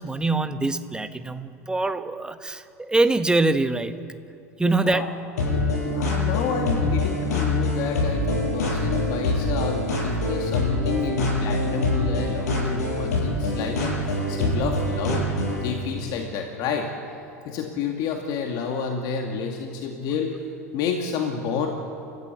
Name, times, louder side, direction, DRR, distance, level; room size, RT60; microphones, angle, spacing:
voice 1, 0.0-3.9 4.6-5.0, right 2 dB, 10° right, 9 dB, 1.4 m, -24 dB
voice 2, 4.6-5.1 5.9-15.3 15.6-16.9 17.4-20.4 20.7-21.7, left 6 dB, 55° left, 2 dB, 2.3 m, -30 dB
sound 1, 5.4-15.7, left 2 dB, 75° left, 7.9 m, -25 dB
30.0 x 14.5 x 8.2 m, 2.6 s
hypercardioid pair, 80°, 9 cm